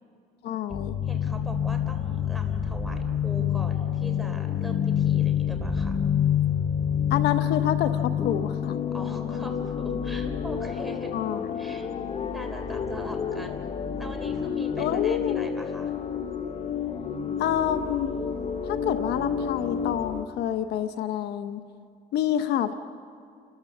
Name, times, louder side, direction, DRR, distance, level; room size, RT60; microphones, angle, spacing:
voice 1, 0.4-0.9 7.1-8.8 11.1-11.6 14.8-15.5 17.4-18.1 18.6-21.6 22.1-22.7, left 10 dB, 80° left, 10 dB, 1.0 m, -28 dB
sound 1, 0.7-20.2, left 8 dB, 40° left, 1.0 m, -28 dB
voice 2, 1.0-6.0 8.9-11.1 11.6-11.9 12.3-13.7 14.0-15.9, right 1 dB, ahead, 2 dB, 3.4 m, -41 dB
29.5 x 14.0 x 7.2 m, 2.3 s
cardioid pair, 110°, 17 cm